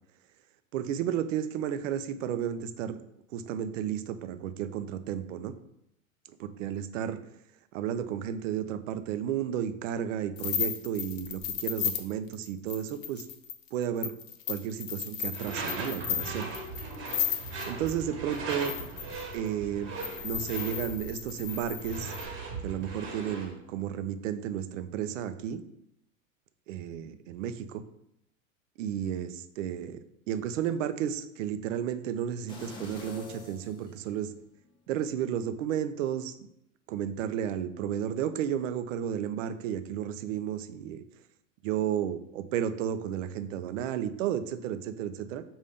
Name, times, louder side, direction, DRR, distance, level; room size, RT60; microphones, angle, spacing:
voice 1, 0.7-3.0 3.3-5.5 6.4-7.2 7.7-13.3 13.7-14.1 14.5-16.5 17.7-18.7 19.3-19.9 20.2-22.1 22.6-25.6 26.7-27.8 28.8-30.0 30.3-34.3 34.9-36.3 36.9-41.0 41.6-45.4, right 9 dB, 70° right, 11 dB, 0.5 m, -32 dB
sound 1, 10.4-17.9 18.5-19.4 20.0-22.3, left 10 dB, 65° left, 0.6 m, -34 dB
Door / Screech, 15.3-23.6, right 3 dB, 30° right, 1.1 m, -39 dB
sound 2, 32.5-34.6 35.1-35.2, left 4 dB, 10° left, 0.4 m, -45 dB
5.3 x 2.6 x 3.5 m, 0.78 s
hypercardioid pair, 125°, 40 cm